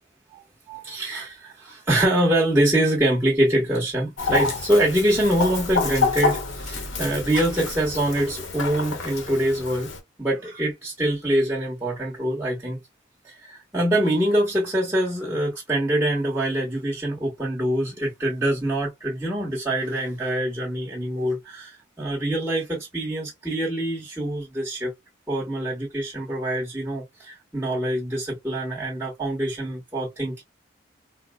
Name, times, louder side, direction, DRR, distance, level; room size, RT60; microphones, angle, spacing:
voice 1, 0.3-9.9 10.2-12.8 13.2-24.9 25.3-30.4, right 1 dB, 10° right, 1.2 m, -24 dB
Chicken rooster, 4.2-10.0, left 4 dB, 90° left, 1.0 m, -28 dB
4.1 x 2.1 x 2.3 m
head